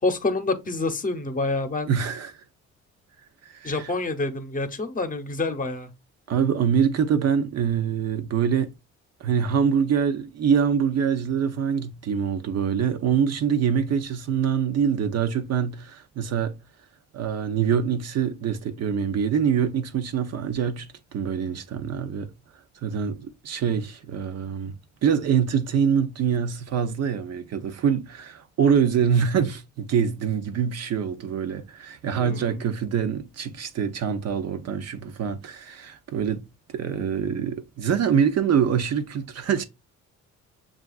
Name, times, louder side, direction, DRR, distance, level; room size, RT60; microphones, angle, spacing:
voice 1, 0.0-1.9 3.6-5.9 32.2-32.6, left 3 dB, 25° left, 0.8 m, -27 dB
voice 2, 1.9-2.4 3.4-3.9 6.3-8.7 9.2-16.6 17.1-22.3 22.8-24.8 25.0-36.4 36.7-39.6, right 7 dB, 55° right, 0.6 m, -24 dB
6.8 x 2.4 x 2.3 m
cardioid pair, 90°, 30 cm